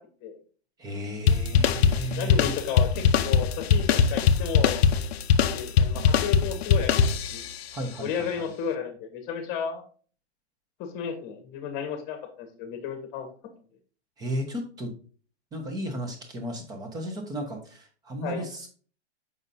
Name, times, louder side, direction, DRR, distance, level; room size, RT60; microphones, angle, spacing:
voice 1, 0.8-2.5 7.7-8.1 8.4-8.5 14.2-14.9 15.5-18.7, equal, 10° right, 4 dB, 0.9 m, -34 dB
sound 1, 1.3-7.6, left 7 dB, 65° left, 0.6 m, -22 dB
voice 2, 2.1-4.8 5.4-7.5 8.0-9.8 10.8-13.3 18.2-18.5, left 7 dB, 25° left, 7 dB, 1.2 m, -33 dB
6.9 x 5.5 x 2.7 m, 0.41 s
hypercardioid pair, 155°, 34 cm